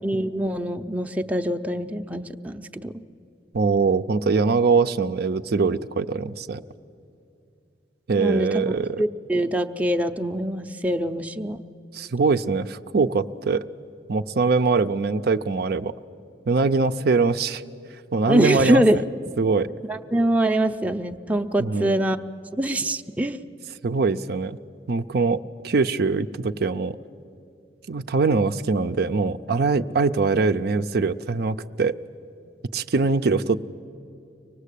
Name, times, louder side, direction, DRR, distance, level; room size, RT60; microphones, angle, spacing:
voice 1, 0.0-2.9 8.2-11.6 18.3-19.0 19.9-22.2 22.6-23.4, right 1 dB, 10° right, 5 dB, 0.6 m, -24 dB
voice 2, 3.5-6.6 8.1-9.0 11.9-13.6 14.1-15.9 16.5-17.6 18.1-18.8 19.4-19.7 21.6-22.0 23.8-24.6 24.9-27.0 27.9-32.0 32.7-33.6, right 4 dB, 60° right, 10 dB, 0.5 m, -22 dB
24.5 x 19.0 x 8.3 m, 2.6 s
head